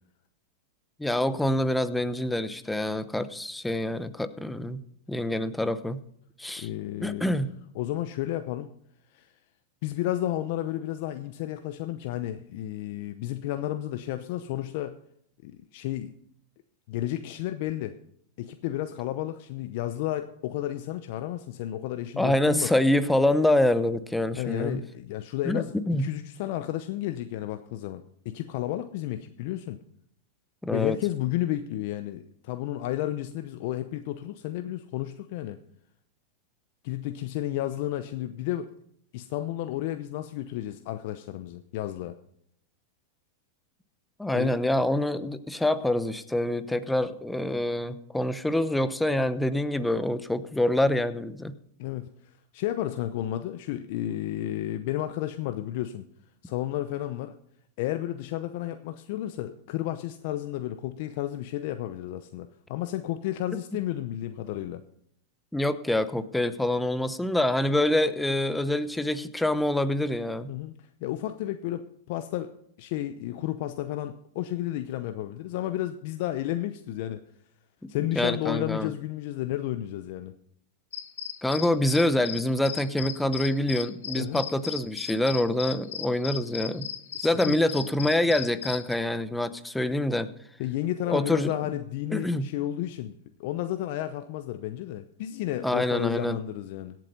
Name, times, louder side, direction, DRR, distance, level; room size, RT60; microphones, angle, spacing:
voice 1, 1.0-4.8 5.1-6.0 6.4-6.7 7.0-7.5 22.2-24.8 25.5-26.0 30.6-31.0 44.2-51.5 65.5-70.5 77.8-78.9 81.4-86.9 87.2-90.3 91.1-91.5 92.1-92.5 95.6-96.4, left 1 dB, 5° left, 13 dB, 0.8 m, -26 dB
voice 2, 6.6-7.3 7.7-8.7 9.1-9.3 9.8-15.0 15.4-16.1 16.9-18.0 18.4-22.7 24.4-25.7 26.0-29.8 30.7-35.6 36.8-38.7 39.1-42.2 44.3-44.6 51.8-56.0 56.4-57.3 57.8-64.8 70.5-70.7 71.0-72.5 72.8-77.2 77.9-80.3 84.1-84.4 87.1-87.6 90.6-93.1 93.4-97.0, left 13 dB, 60° left, 9 dB, 0.7 m, -32 dB
sound 1, 80.9-88.9, left 9 dB, 80° left, 1.4 m, -37 dB
17.0 x 7.7 x 5.3 m, 0.69 s
hypercardioid pair, 120°, 0 cm